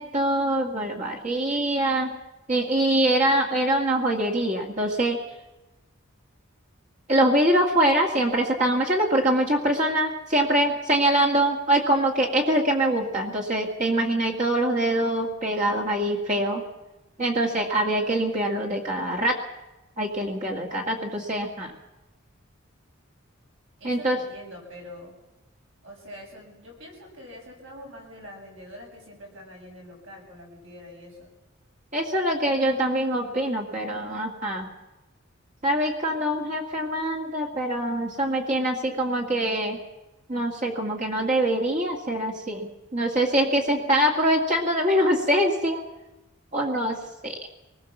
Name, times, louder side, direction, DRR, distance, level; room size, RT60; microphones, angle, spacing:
voice 1, 0.0-2.1 2.5-5.2 7.1-16.6 17.2-19.4 20.0-21.7 23.8-24.2 31.9-34.7 35.6-39.8 40.3-45.8 46.5-47.4, right 1 dB, 35° right, 0 dB, 2.0 m, -24 dB
voice 2, 23.8-25.1 25.8-31.3, left 1 dB, 65° right, 0 dB, 7.0 m, -44 dB
25.0 x 20.0 x 7.2 m, 1.0 s
head